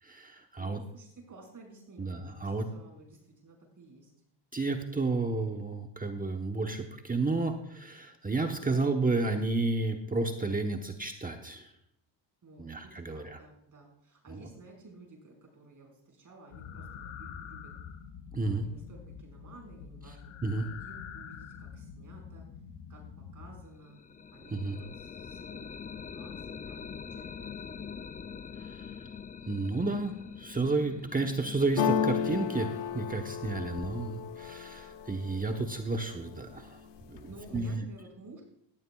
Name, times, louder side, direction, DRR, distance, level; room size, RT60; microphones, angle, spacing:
voice 1, 0.0-0.8 2.0-2.7 4.5-11.7 12.6-13.4 18.3-18.6 20.4-20.7 24.5-24.8 28.6-28.9 29.5-37.9, right 3 dB, 20° right, 4 dB, 1.1 m, -32 dB
voice 2, 0.6-4.1 12.4-17.7 18.3-22.5 22.9-23.0 23.3-24.0 24.3-28.1 37.3-38.4, right 3 dB, 40° right, 0 dB, 5.3 m, -53 dB
sound 1, 16.5-23.6, left 7 dB, 75° left, 1.3 m, -46 dB
sound 2, 23.8-33.6, left 6 dB, 20° left, 0.3 m, -44 dB
sound 3, 31.8-35.6 36.1-36.7 37.0-37.8, left 8 dB, 60° left, 0.9 m, -33 dB
14.5 x 14.0 x 2.4 m, 0.72 s
cardioid pair, 80°, 48 cm